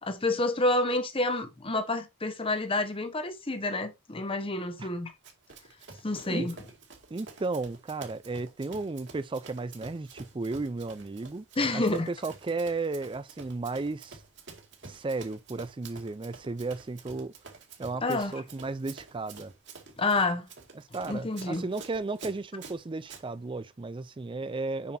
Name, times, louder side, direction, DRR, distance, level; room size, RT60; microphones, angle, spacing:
voice 1, 0.0-5.1 6.0-6.5 11.6-12.1 18.0-18.3 20.0-20.5 21.1-21.7, left 2 dB, 25° left, 1.0 m, -28 dB
Run, 5.2-23.2, right 4 dB, 55° right, 2.2 m, -49 dB
voice 2, 7.1-11.4 11.7-14.2 14.8-17.3 17.8-19.5 20.8-25.0, right 3 dB, 25° right, 0.4 m, -34 dB
7.4 x 5.8 x 2.6 m
head